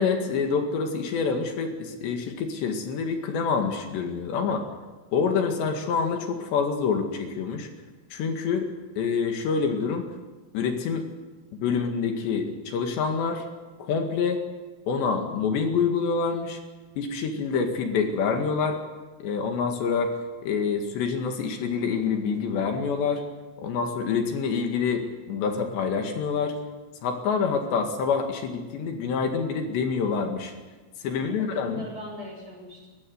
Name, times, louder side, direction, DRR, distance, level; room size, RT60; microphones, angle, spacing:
voice 1, 0.0-4.6 5.1-7.7 8.1-8.7 9.0-10.1 10.5-11.0 11.5-13.4 13.8-14.4 14.9-16.6 17.0-18.8 19.2-20.1 20.4-23.2 23.6-26.6 27.0-30.5 31.0-31.8, left 5 dB, 80° left, 4 dB, 4.2 m, -26 dB
voice 2, 31.0-32.9, left 1 dB, 20° right, 0 dB, 6.2 m, -40 dB
22.0 x 15.5 x 9.6 m, 1.3 s
omnidirectional pair, 5.0 m